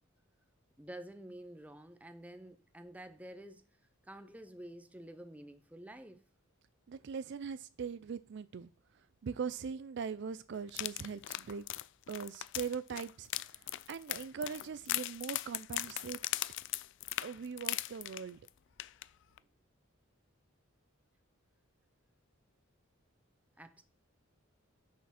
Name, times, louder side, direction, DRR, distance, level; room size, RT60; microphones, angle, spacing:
voice 1, 0.8-3.7 4.0-6.3 23.6-23.8, right 1 dB, 5° right, 0.7 m, -50 dB
voice 2, 6.9-8.7 9.2-11.7 12.1-13.3 13.5-13.6 13.9-16.2 17.2-18.4, right 6 dB, 55° right, 0.4 m, -41 dB
sound 1, 10.7-18.5 18.8-19.0 19.4-19.5, left 16 dB, 60° left, 0.3 m, -39 dB
6.4 x 5.9 x 5.8 m
head